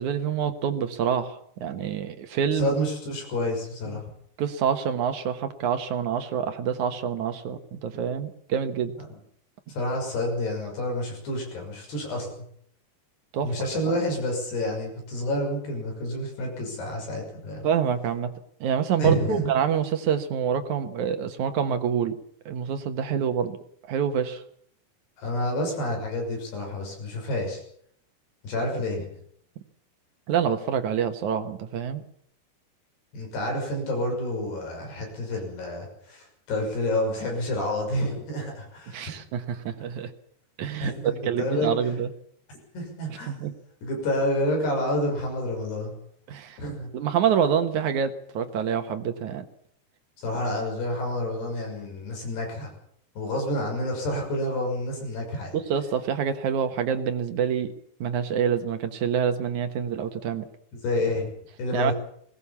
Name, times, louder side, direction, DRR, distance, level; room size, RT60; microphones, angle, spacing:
voice 1, 0.0-2.7 4.4-8.9 13.3-13.5 13.9-14.0 17.6-18.3 18.6-22.2 22.5-23.6 23.9-24.4 30.3-32.0 38.9-40.1 40.6-42.1 43.3-43.5 46.3-46.6 46.9-49.5 55.5-57.7 58.0-60.5 61.7-61.9, right 8 dB, 60° right, 8 dB, 2.3 m, -26 dB
voice 2, 2.5-4.0 9.1-9.2 9.7-12.4 13.4-17.7 19.0-19.5 25.2-27.6 28.4-29.1 33.1-39.0 40.8-41.7 42.7-43.3 43.8-45.9 46.6-46.9 50.2-52.7 53.2-55.5 60.8-61.3 61.6-61.9, left 1 dB, 85° left, 2 dB, 8.4 m, -29 dB
20.5 x 18.5 x 7.2 m, 0.67 s
omnidirectional pair, 4.6 m